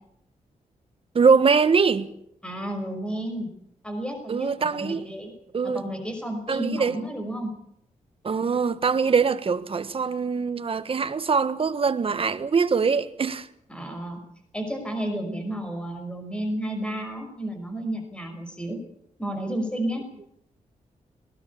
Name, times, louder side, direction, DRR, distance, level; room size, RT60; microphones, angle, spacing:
voice 1, 1.1-2.1 4.3-5.0 5.5-5.8 6.5-7.0 8.2-13.5, right 5 dB, 45° right, 1.5 m, -23 dB
voice 2, 2.4-3.5 3.8-5.3 5.6-7.5 13.7-14.2 14.5-18.8 19.2-20.1, right 1 dB, 5° left, 5.7 m, -31 dB
20.0 x 18.5 x 8.6 m
wide cardioid pair, 115°, 14 cm